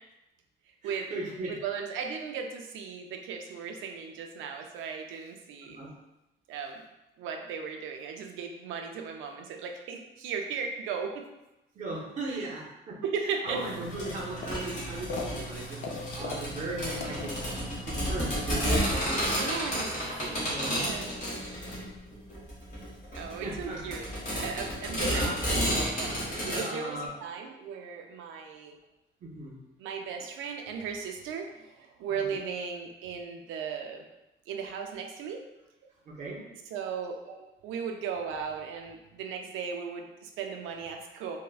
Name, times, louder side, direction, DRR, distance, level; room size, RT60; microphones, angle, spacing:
voice 1, 0.8-1.5 5.6-5.9 11.7-17.6 17.9-19.5 20.2-20.9 23.4-23.9 24.9-25.4 26.4-27.2 29.2-29.6 32.2-32.4 36.1-36.5 37.3-37.4, right 2 dB, 40° right, -3 dB, 0.6 m, -38 dB
voice 2, 1.5-5.8 6.5-6.8 7.2-11.2 12.3-12.4 13.0-13.6 19.3-19.9 20.7-21.1 23.1-26.1 26.5-28.8 29.8-34.0 34.5-35.4 36.7-37.2 37.6-41.4, right 6 dB, 90° right, 3 dB, 0.4 m, -36 dB
sound 1, 13.5-18.6, left 1 dB, 75° left, 0.5 m, -39 dB
sound 2, 13.9-26.6, equal, 40° left, 1.1 m, -31 dB
3.2 x 2.1 x 2.3 m, 0.96 s
cardioid pair, 175°, 20 cm